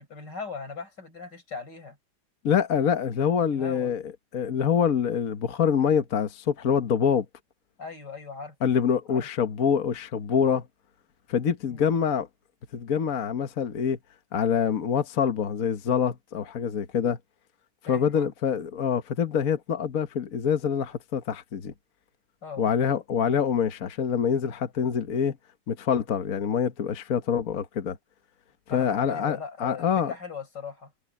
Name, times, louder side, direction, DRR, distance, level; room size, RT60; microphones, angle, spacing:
voice 1, 0.0-2.0 3.4-3.9 7.8-8.6 9.1-9.3 11.7-12.0 17.9-18.3 22.4-22.7 28.7-30.9, left 5 dB, 85° left, 5.5 m, -39 dB
voice 2, 2.4-4.0 4.3-7.2 8.6-10.7 11.3-12.3 12.7-14.0 14.3-17.2 17.9-21.7 22.6-25.4 25.7-28.0 28.7-30.1, left 7 dB, 55° left, 1.5 m, -25 dB
omnidirectional pair, 1.8 m